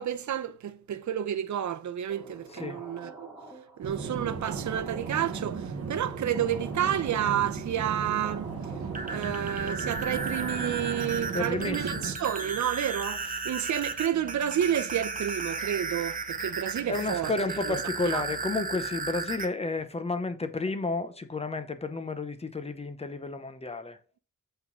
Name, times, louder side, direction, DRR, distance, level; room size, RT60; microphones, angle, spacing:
voice 1, 0.0-3.3 3.8-8.5 9.1-17.3 17.7-17.8 18.1-18.2, right 10 dB, 75° right, 0.8 m, -30 dB
sound 1, 2.1-11.5, right 2 dB, ahead, 2.5 m, -47 dB
voice 2, 2.5-2.8 11.3-12.1 16.9-24.0, left 3 dB, 20° left, 0.8 m, -32 dB
sound 2, 3.8-12.2, right 5 dB, 55° right, 1.2 m, -36 dB
sound 3, 8.8-19.5, right 3 dB, 30° right, 0.9 m, -35 dB
8.4 x 3.8 x 6.0 m
wide cardioid pair, 155°, 29 cm